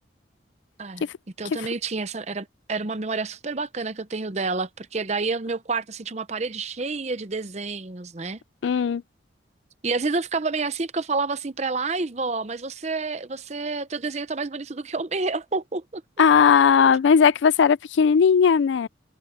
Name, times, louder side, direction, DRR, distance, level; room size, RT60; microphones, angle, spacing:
voice 1, 1.4-8.4 9.8-16.0, right 3 dB, 35° right, 0.7 m, -29 dB
voice 2, 8.6-9.0 16.2-18.9, left 6 dB, 80° left, 0.4 m, -17 dB
head